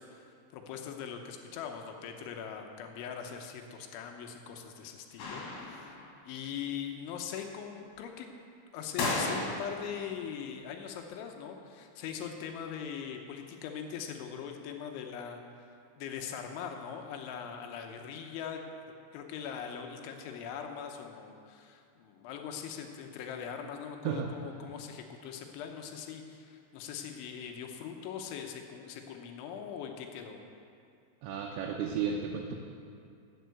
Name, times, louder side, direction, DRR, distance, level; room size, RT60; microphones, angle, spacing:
voice 1, 0.0-8.3 8.7-18.6 19.1-30.4, left 7 dB, 80° left, 4 dB, 3.2 m, -41 dB
sound 1, 5.2-6.2 9.0-10.0, left 2 dB, 65° left, 3.5 m, -34 dB
voice 2, 31.2-32.6, right 7 dB, 80° right, 0 dB, 3.2 m, -33 dB
12.5 x 7.3 x 8.1 m, 2.4 s
omnidirectional pair, 5.5 m